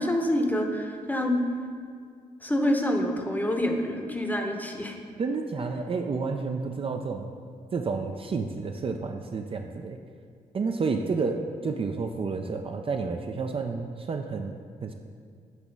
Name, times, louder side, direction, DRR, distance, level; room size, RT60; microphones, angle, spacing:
voice 1, 0.0-1.4 2.4-5.0, left 1 dB, 10° left, 3 dB, 0.8 m, -27 dB
voice 2, 5.2-7.3 7.7-10.0 10.5-14.9, right 4 dB, 40° right, 4 dB, 0.4 m, -30 dB
8.0 x 3.0 x 5.2 m, 2.1 s
cardioid pair, 60°, 15 cm